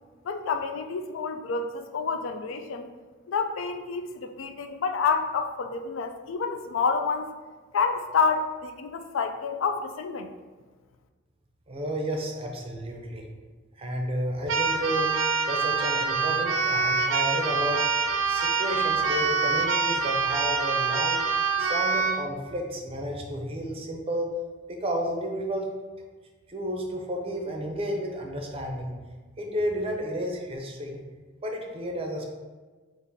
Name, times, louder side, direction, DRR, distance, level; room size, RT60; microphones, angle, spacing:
voice 1, 0.2-2.9 3.3-7.3 7.7-10.3, left 5 dB, 75° left, 7 dB, 0.4 m, -28 dB
voice 2, 11.7-13.2 13.8-15.1 15.5-17.8 18.3-21.2 21.6-24.3 24.7-25.7 26.5-28.9 29.4-31.0 31.4-32.3, equal, 30° right, 2 dB, 0.5 m, -32 dB
Keyboard (musical), 14.5-22.2, right 4 dB, 85° right, 0.5 m, -25 dB
3.7 x 2.5 x 4.0 m, 1.3 s
head